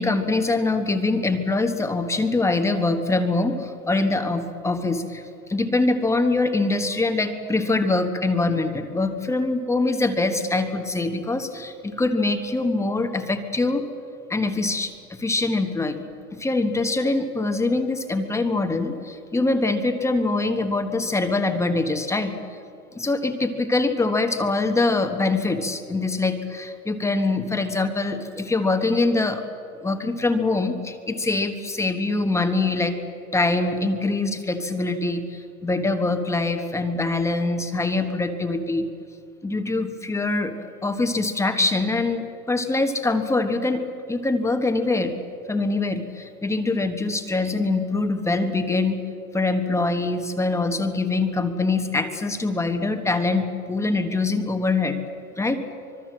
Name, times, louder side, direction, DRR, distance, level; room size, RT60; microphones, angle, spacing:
voice 1, 0.0-5.2 5.5-13.8 14.3-16.1 16.4-22.3 22.9-29.4 29.8-33.0 33.3-38.9 39.4-43.8 44.1-45.1 45.5-49.0 49.3-55.0 55.4-55.6, left 3 dB, 5° left, 6 dB, 1.3 m, -24 dB
25.5 x 22.0 x 7.6 m, 2.4 s
hypercardioid pair, 135°, 47 cm